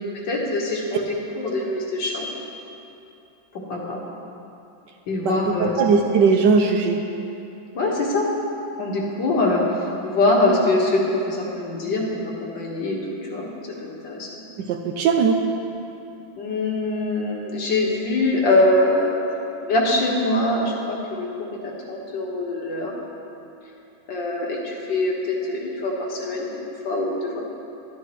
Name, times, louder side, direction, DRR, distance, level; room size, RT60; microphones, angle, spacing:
voice 1, 0.3-2.3 3.5-4.0 5.1-5.7 7.7-8.3 8.8-13.0 13.3-13.5 13.8-14.3 16.4-19.1 19.6-22.9 24.1-27.5, left 2 dB, 65° left, -2 dB, 2.0 m, -23 dB
voice 2, 5.2-7.0 14.6-15.4, right 5 dB, 75° right, 4 dB, 1.1 m, -19 dB
12.0 x 11.5 x 3.0 m, 2.8 s
omnidirectional pair, 2.2 m